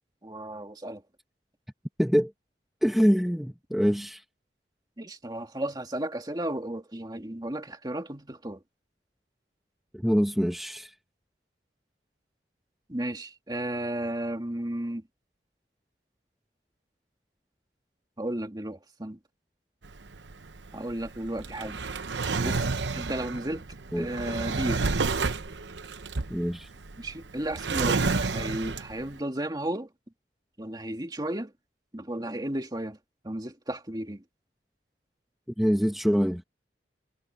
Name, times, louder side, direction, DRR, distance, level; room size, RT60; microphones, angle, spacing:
voice 1, 0.2-1.0 5.0-8.6 12.9-15.0 18.2-19.2 20.7-21.8 22.4-22.7 22.9-23.6 24.0-24.9 27.0-29.9 30.6-31.5 31.9-33.0 33.2-34.2, right 1 dB, 25° right, 2.2 m, -34 dB
voice 2, 2.0-2.3 2.8-4.2 9.9-10.9 23.9-24.1 26.3-26.7 35.6-36.4, equal, ahead, 1.0 m, -24 dB
Drawer open or close, 19.8-29.1, right 4 dB, 85° right, 0.9 m, -30 dB
head